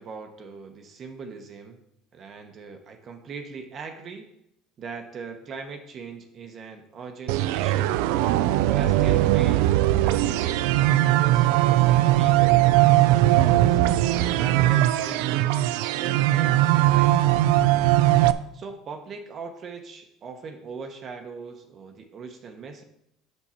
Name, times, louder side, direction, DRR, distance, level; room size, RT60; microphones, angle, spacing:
voice 1, 0.0-1.8 2.1-4.3 4.8-8.1 8.7-9.7 10.0-13.8 14.3-15.7 16.0-17.1 18.5-22.8, right 5 dB, 40° right, 5 dB, 0.9 m, -40 dB
sound 1, 7.3-18.3, right 14 dB, 85° right, 0.4 m, -20 dB
7.3 x 6.6 x 4.3 m, 0.77 s
supercardioid pair, 115°, 0 cm